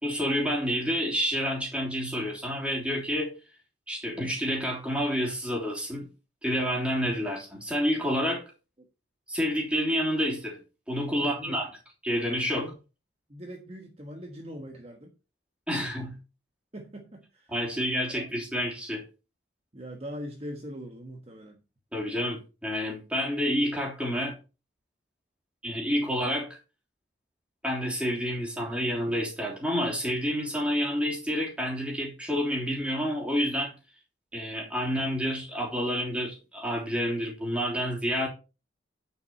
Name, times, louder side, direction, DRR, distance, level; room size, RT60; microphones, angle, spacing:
voice 1, 0.0-3.3 3.9-6.1 6.4-8.4 9.3-10.6 10.9-11.7 12.0-12.7 15.7-16.2 17.5-19.0 21.9-24.4 25.6-26.6 27.6-33.7 34.3-38.3, equal, 5° right, 3.3 m, -29 dB
voice 2, 11.2-11.6 12.5-12.7 13.3-15.1 16.7-17.5 18.1-18.3 19.7-21.6, equal, 35° right, 1.4 m, -41 dB
9.5 x 7.0 x 4.4 m
head